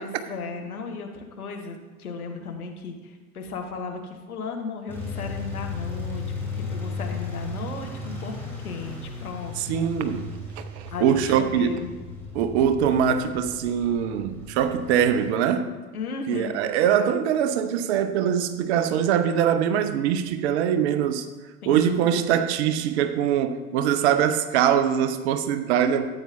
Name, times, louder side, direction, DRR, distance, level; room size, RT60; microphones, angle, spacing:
voice 1, 0.0-6.2 6.5-9.5 10.9-11.9 15.9-16.6 21.6-22.2, left 4 dB, 75° left, 1.4 m, -35 dB
sound 1, 4.9-15.3, left 3 dB, 5° left, 3.4 m, -35 dB
voice 2, 9.6-11.8 12.3-15.7 16.3-21.3 21.7-26.1, right 8 dB, 50° right, 0.8 m, -23 dB
13.5 x 8.6 x 2.6 m
figure-of-eight pair, 85°, 44 cm